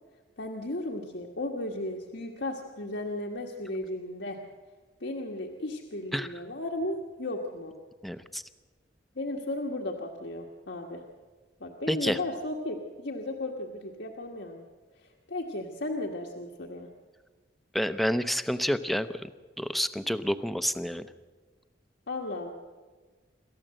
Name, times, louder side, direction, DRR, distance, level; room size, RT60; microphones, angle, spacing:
voice 1, 0.4-4.4 5.0-7.7 9.1-11.0 11.6-14.6 15.0-16.9 22.1-22.5, left 2 dB, 75° left, 0 dB, 1.6 m, -35 dB
voice 2, 8.0-8.4 11.9-12.2 17.7-19.1 19.6-21.0, equal, ahead, 11 dB, 0.7 m, -28 dB
27.0 x 13.5 x 7.7 m, 1.4 s
head